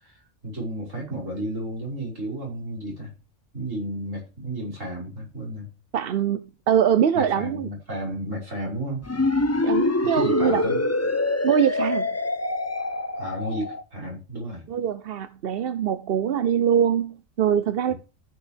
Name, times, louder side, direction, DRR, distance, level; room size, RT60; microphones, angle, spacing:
voice 1, 0.0-3.1 3.5-5.7 7.1-9.0 10.1-10.8 13.2-14.7 17.9-18.0, right 1 dB, 85° right, 6.4 m, -32 dB
voice 2, 5.9-7.7 9.6-12.1 14.7-17.9, right 8 dB, 55° right, 0.8 m, -23 dB
sound 1, 9.0-13.8, left 2 dB, 15° left, 0.5 m, -25 dB
14.5 x 6.3 x 3.4 m
omnidirectional pair, 1.3 m